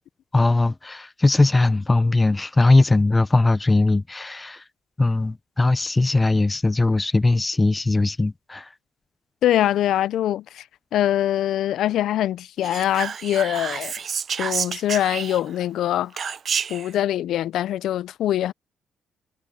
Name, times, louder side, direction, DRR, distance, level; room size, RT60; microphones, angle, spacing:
voice 1, 0.3-4.6 5.0-8.7, left 2 dB, 20° left, 0.4 m, -20 dB
voice 2, 9.4-10.6 10.9-13.9 14.4-16.3 16.7-18.5, left 12 dB, 75° left, 0.4 m, -23 dB
Whispering, 12.6-15.6 16.2-16.9, right 7 dB, 50° right, 0.5 m, -29 dB
cardioid pair, 90°, 0 cm